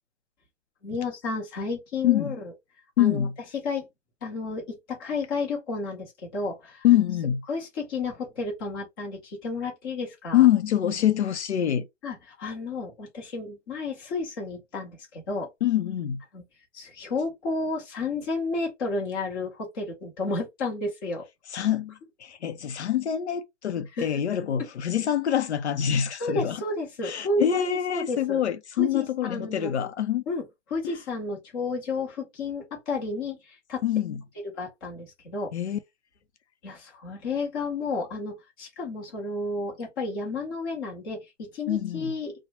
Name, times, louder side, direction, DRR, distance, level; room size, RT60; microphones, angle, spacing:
voice 1, 0.8-2.5 3.0-3.3 3.6-3.9 4.2-6.8 7.5-10.5 12.0-15.5 16.3-16.4 16.7-21.2 23.9-24.1 26.2-28.4 28.8-29.9 30.3-30.4 30.7-33.8 34.6-35.5 36.6-42.3, left 3 dB, 20° left, 0.8 m, -32 dB
voice 2, 3.0-3.3 6.8-7.4 10.3-11.9 15.6-16.2 21.5-26.6 27.0-30.2 33.8-34.2 35.5-35.8 41.7-42.1, left 11 dB, 65° left, 0.5 m, -25 dB
2.9 x 2.1 x 2.9 m
hypercardioid pair, 160°, 37 cm